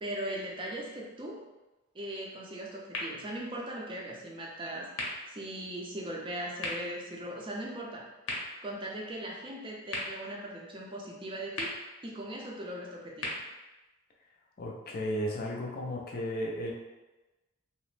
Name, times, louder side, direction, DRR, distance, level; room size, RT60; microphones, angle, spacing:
voice 1, 0.0-1.4 1.9-8.0 8.6-11.7 12.0-13.3, right 1 dB, 25° right, -2 dB, 0.5 m, -39 dB
sound 1, 2.9-14.8, left 1 dB, 80° left, 0.7 m, -43 dB
voice 2, 14.6-16.7, equal, 45° left, -1 dB, 0.5 m, -34 dB
2.9 x 2.0 x 3.1 m, 1.1 s
head